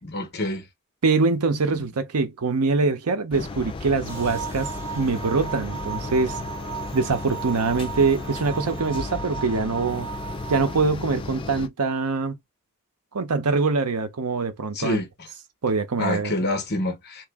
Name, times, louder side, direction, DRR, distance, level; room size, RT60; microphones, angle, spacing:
voice 1, 0.0-0.6 1.7-1.8 14.7-15.1 16.0-17.2, left 2 dB, 45° left, 1.0 m, -27 dB
voice 2, 1.0-6.4 6.9-10.1 10.5-12.3 13.1-15.0 15.6-16.3, right 4 dB, 90° right, 0.7 m, -24 dB
sound 1, 3.3-11.7, left 3 dB, 25° left, 0.3 m, -34 dB
sound 2, 4.1-10.8, right 8 dB, 10° right, 1.0 m, -36 dB
3.0 x 2.5 x 3.5 m
head